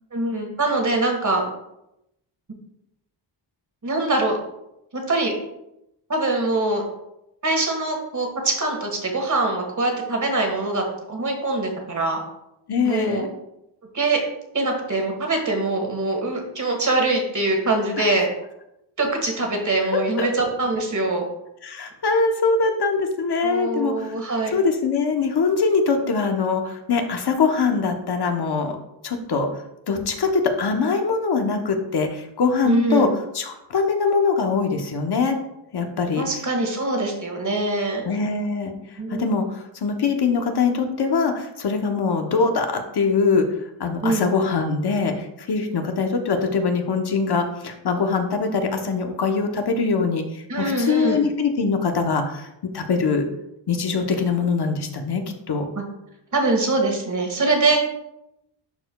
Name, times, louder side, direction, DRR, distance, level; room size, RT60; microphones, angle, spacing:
voice 1, 0.1-1.4 3.8-4.4 4.9-5.3 6.1-6.8 7.4-12.2 12.8-13.2 13.9-14.2 14.5-18.3 19.0-21.2 23.4-24.5 32.6-33.1 36.1-38.0 39.0-39.2 44.0-44.3 50.5-51.2 55.7-55.8 56.3-57.8, right 2 dB, 40° right, 2 dB, 1.6 m, -23 dB
voice 2, 12.7-13.3 18.0-18.1 19.9-20.3 21.6-24.1 24.5-28.8 29.0-29.5 29.9-33.1 33.3-35.4 35.7-36.2 38.0-38.7 39.1-43.4 43.8-52.5 52.7-53.2 53.7-55.6, left 4 dB, 55° left, 5 dB, 0.9 m, -22 dB
11.5 x 4.5 x 2.3 m, 0.84 s
wide cardioid pair, 130°, 46 cm